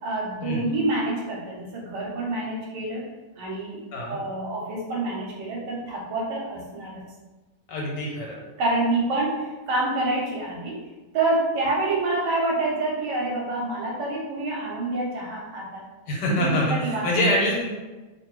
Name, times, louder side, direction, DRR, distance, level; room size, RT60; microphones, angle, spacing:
voice 1, 0.0-3.0 3.4-7.0 8.6-10.8 11.1-15.8 16.4-17.0, right 2 dB, 85° right, -3 dB, 1.3 m, -27 dB
voice 2, 7.7-8.4 16.1-17.6, equal, 85° left, -3 dB, 1.4 m, -25 dB
2.7 x 2.6 x 3.1 m, 1.2 s
omnidirectional pair, 1.8 m